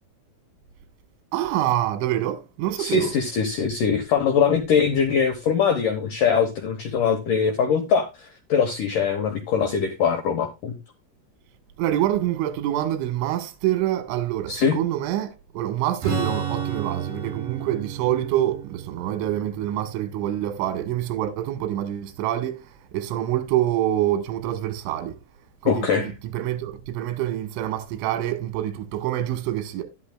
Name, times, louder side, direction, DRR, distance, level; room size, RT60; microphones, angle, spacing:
voice 1, 1.3-3.1 11.8-25.2 25.6-29.8, right 12 dB, 85° right, 3.5 m, -26 dB
voice 2, 2.8-10.8 14.5-14.8 25.7-26.1, left 6 dB, 80° left, 1.9 m, -22 dB
Strum, 16.0-21.6, right 6 dB, 50° right, 8.1 m, -32 dB
12.0 x 11.5 x 2.2 m
omnidirectional pair, 5.4 m